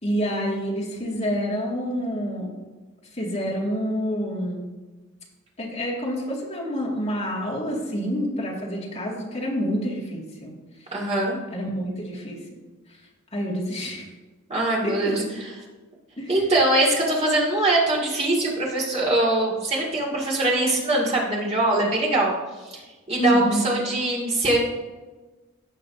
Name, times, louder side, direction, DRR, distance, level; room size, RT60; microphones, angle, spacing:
voice 1, 0.0-2.5 3.1-4.7 5.6-10.5 11.5-12.4 13.3-14.1 14.8-15.3 16.2-16.3 23.2-23.7, equal, 30° left, -4 dB, 2.1 m, -27 dB
voice 2, 10.9-11.4 14.5-15.5 16.3-22.3 22.6-22.8 23.1-24.6, right 1 dB, 30° right, -4 dB, 2.1 m, -22 dB
16.0 x 5.7 x 2.7 m, 1.2 s
head